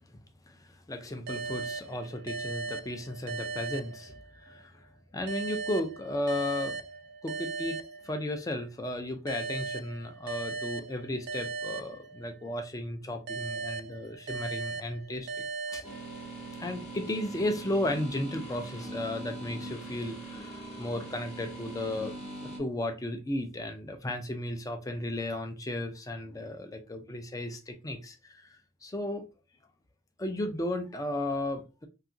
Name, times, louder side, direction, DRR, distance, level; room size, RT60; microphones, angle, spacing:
voice 1, 0.5-6.8 7.2-15.9 16.6-22.1 22.6-29.3 30.2-31.9, left 1 dB, 15° left, 0.4 m, -35 dB
sound 1, 1.3-4.6 5.3-8.6 9.3-12.6 13.3-16.6, right 4 dB, 55° right, 0.3 m, -38 dB
sound 2, 15.8-22.6, right 2 dB, 35° left, 0.8 m, -42 dB
2.8 x 2.4 x 2.5 m
head